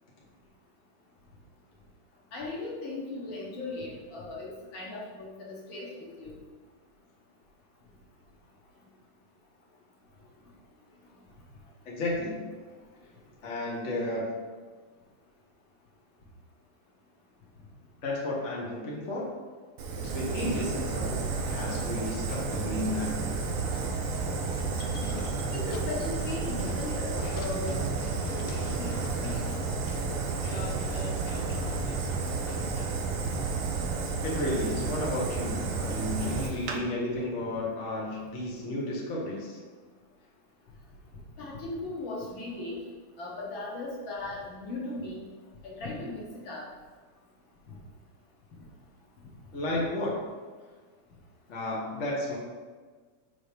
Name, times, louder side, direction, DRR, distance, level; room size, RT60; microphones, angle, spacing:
voice 1, 2.3-6.3 25.5-29.5 41.4-42.8 43.2-45.3 45.6-46.6, left 2 dB, 50° left, -4 dB, 1.7 m, -38 dB
voice 2, 11.8-12.5 13.4-14.3 18.0-19.2 20.0-23.3 34.2-39.6 49.5-50.2 51.5-52.4, left 1 dB, 70° left, -4 dB, 0.6 m, -33 dB
Fire, 19.8-36.8, right 4 dB, 85° right, 1.2 m, -31 dB
sound 1, 23.6-32.9, left 3 dB, 90° left, 2.3 m, -43 dB
6.2 x 5.0 x 5.0 m, 1.5 s
omnidirectional pair, 3.5 m